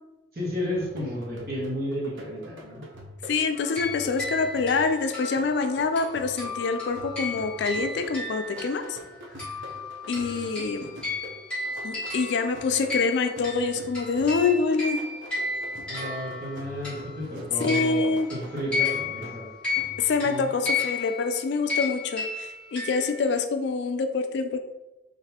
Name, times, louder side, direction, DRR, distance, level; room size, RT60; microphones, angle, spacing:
voice 1, 0.3-2.8 15.9-19.4 20.2-20.5, equal, 50° right, -4 dB, 1.4 m, -32 dB
sound 1, 0.7-20.3, equal, 90° right, 0.7 m, -44 dB
voice 2, 3.3-9.0 10.1-10.9 11.8-15.0 17.6-18.3 20.0-24.6, left 4 dB, 65° left, 7 dB, 0.3 m, -26 dB
sound 2, 3.6-9.1 9.4-17.2 17.6-23.3, left 4 dB, 5° left, 1.3 m, -33 dB
3.9 x 3.4 x 2.8 m, 1.0 s
head